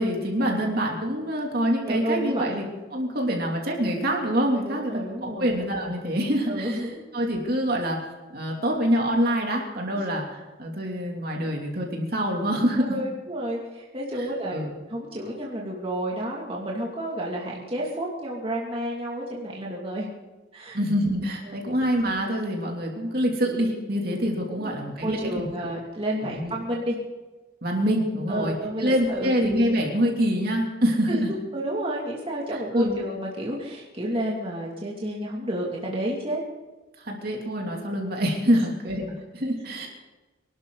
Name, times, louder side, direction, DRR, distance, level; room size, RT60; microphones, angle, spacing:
voice 1, 0.0-2.7 2.9-6.8 7.1-8.0 8.3-12.9 14.2-14.7 20.7-25.7 26.2-26.5 27.6-31.3 32.7-33.0 37.1-39.9, equal, 50° right, 0 dB, 3.1 m, -25 dB
voice 2, 1.9-2.5 4.6-5.5 6.5-7.0 9.9-10.0 12.8-20.1 20.5-20.8 21.4-21.6 24.5-24.8 25.0-27.0 28.3-29.4 31.1-31.2 31.5-36.4, right 1 dB, 30° right, -3 dB, 2.6 m, -31 dB
25.5 x 12.0 x 4.1 m, 1.2 s
head